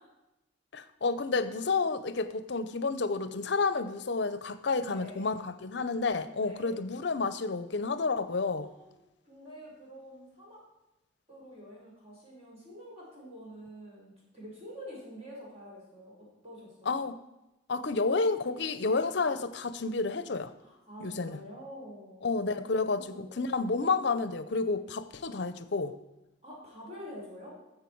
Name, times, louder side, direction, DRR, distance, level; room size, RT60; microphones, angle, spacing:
voice 1, 0.7-8.7 16.9-17.2 17.7-20.5 21.0-21.4 22.2-25.9, left 4 dB, 60° left, 0.6 m, -30 dB
voice 2, 4.8-5.3 6.4-6.8 8.5-9.0 9.3-10.6 11.3-16.1 16.4-17.0 20.6-23.7 26.4-27.5, equal, 30° right, 4.5 m, -47 dB
14.0 x 6.7 x 4.6 m
head